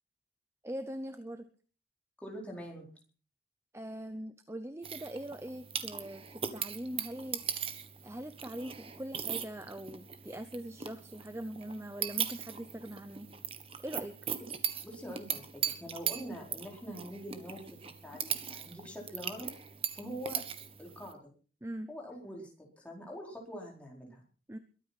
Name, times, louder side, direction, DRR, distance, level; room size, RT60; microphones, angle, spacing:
voice 1, 0.6-1.5 3.7-7.4 8.0-13.3 13.8-14.1 21.6-21.9 24.5-24.6, right 1 dB, 15° right, 10 dB, 0.8 m, -42 dB
voice 2, 2.2-2.9 14.8-17.8 18.0-19.5 19.9-20.4 20.8-21.3 21.9-24.2, equal, 5° left, -1 dB, 4.5 m, -44 dB
sound 1, 4.8-21.1, right 8 dB, 30° right, 1.4 m, -39 dB
22.5 x 9.3 x 5.9 m, 0.40 s
head